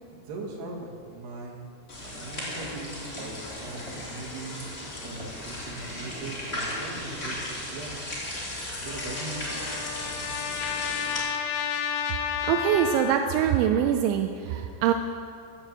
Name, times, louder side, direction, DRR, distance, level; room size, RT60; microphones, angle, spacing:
voice 1, 0.1-1.7 2.0-3.3 3.6-7.4 7.7-8.0 8.8-9.4, right 3 dB, 65° right, -2 dB, 3.9 m, -40 dB
sound 1, 1.9-11.2, left 1 dB, 20° left, 2.2 m, -36 dB
sound 2, 2.3-6.9, equal, 25° right, 0.7 m, -47 dB
Trumpet, 8.9-13.7, left 8 dB, 80° left, 3.0 m, -32 dB
voice 2, 12.4-14.9, right 9 dB, 90° right, 5 dB, 3.0 m, -24 dB
14.0 x 8.0 x 7.5 m, 2.3 s
omnidirectional pair, 5.2 m